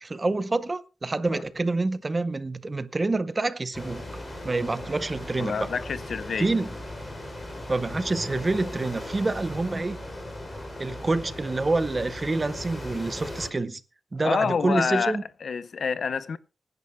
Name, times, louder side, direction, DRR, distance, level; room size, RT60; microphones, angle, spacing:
voice 1, 0.0-4.0 4.4-5.7 6.4-6.8 7.7-10.0 10.8-13.8 14.1-15.2, right 3 dB, 25° right, 0.7 m, -27 dB
sound 1, 3.7-13.5, left 1 dB, 20° left, 3.2 m, -38 dB
voice 2, 5.4-6.5 14.2-16.4, left 6 dB, 60° left, 0.5 m, -28 dB
25.0 x 10.5 x 2.2 m
wide cardioid pair, 165°, 0 cm